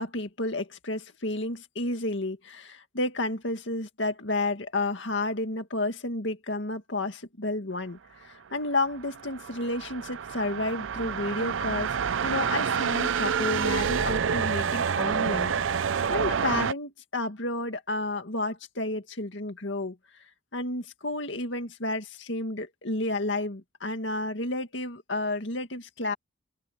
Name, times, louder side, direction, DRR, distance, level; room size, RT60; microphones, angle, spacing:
voice 1, 0.0-11.9 12.2-20.0 20.5-26.1, left 2 dB, 70° left, 2.1 m, -31 dB
sound 1, 8.8-16.7, right 7 dB, 75° right, 0.5 m, -28 dB
head